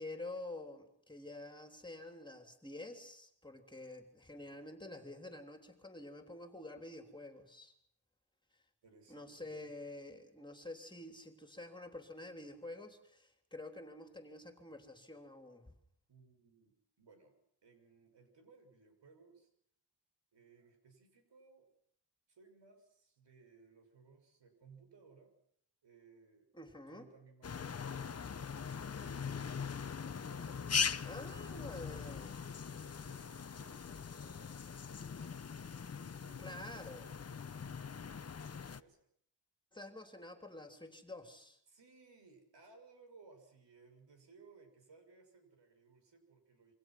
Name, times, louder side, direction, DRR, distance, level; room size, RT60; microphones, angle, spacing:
voice 1, 0.0-7.7 8.5-8.6 9.1-15.7 26.5-27.1 31.0-32.4 36.4-37.1 39.7-41.6, left 2 dB, 10° left, 5 dB, 3.3 m, -49 dB
voice 2, 8.8-9.7 16.1-17.4 17.6-19.5 20.3-21.7 22.3-25.3 25.8-26.5 26.9-31.9 32.5-39.0 41.7-46.7, right 4 dB, 85° right, 6 dB, 6.3 m, -63 dB
sound 1, 27.4-38.8, left 6 dB, 35° left, 0.9 m, -41 dB
27.5 x 24.0 x 6.1 m, 0.69 s
wide cardioid pair, 120°, 42 cm